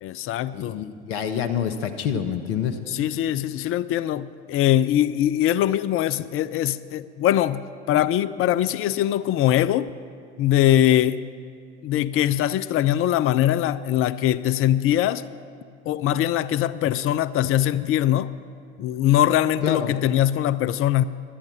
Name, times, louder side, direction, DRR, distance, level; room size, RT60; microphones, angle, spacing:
voice 1, 0.0-0.8 2.9-9.9 10.4-11.2 11.8-15.2 15.9-18.3 18.8-21.0, left 12 dB, 40° left, 16 dB, 0.5 m, -22 dB
voice 2, 0.5-2.8 19.6-20.0, left 8 dB, 65° left, 7 dB, 0.9 m, -27 dB
11.5 x 9.9 x 7.2 m, 2.3 s
hypercardioid pair, 70°, 34 cm